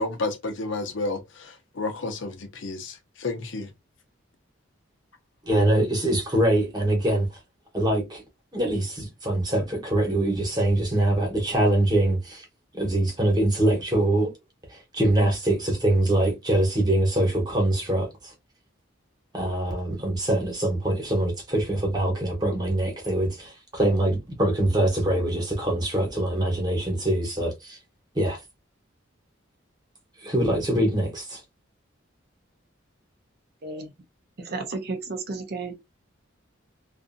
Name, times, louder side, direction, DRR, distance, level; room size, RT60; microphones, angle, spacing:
voice 1, 0.0-3.7, left 2 dB, 65° left, 0.6 m, -31 dB
voice 2, 5.4-7.4 7.7-8.2 8.5-12.4 12.7-14.3 14.7-18.3 19.3-27.8 28.1-28.4 30.2-31.4, right 1 dB, 20° right, 1.1 m, -24 dB
voice 3, 33.6-33.9 34.4-35.8, right 3 dB, 50° right, 0.6 m, -33 dB
2.6 x 2.5 x 2.5 m
head